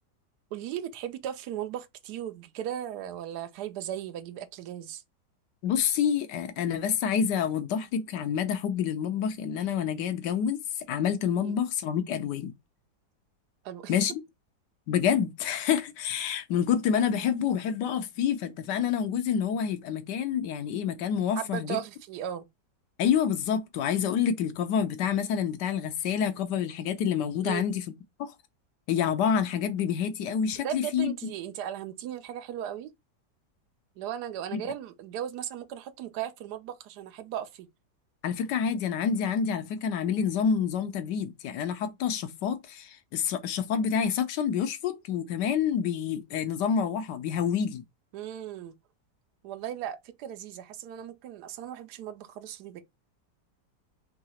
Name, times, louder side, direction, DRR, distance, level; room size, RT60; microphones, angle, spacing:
voice 1, 0.5-5.0 11.4-11.5 13.6-14.0 21.4-22.5 27.4-27.6 30.6-32.9 34.0-37.7 48.1-48.7 49.4-52.8, right 10 dB, 70° right, 1.1 m, -37 dB
voice 2, 5.6-10.6 10.9-12.5 13.9-14.2 14.9-21.8 23.0-27.8 28.2-28.3 28.9-31.1 34.5-34.6 38.2-47.8, left 8 dB, 80° left, 1.3 m, -28 dB
3.8 x 2.8 x 4.2 m
omnidirectional pair, 1.9 m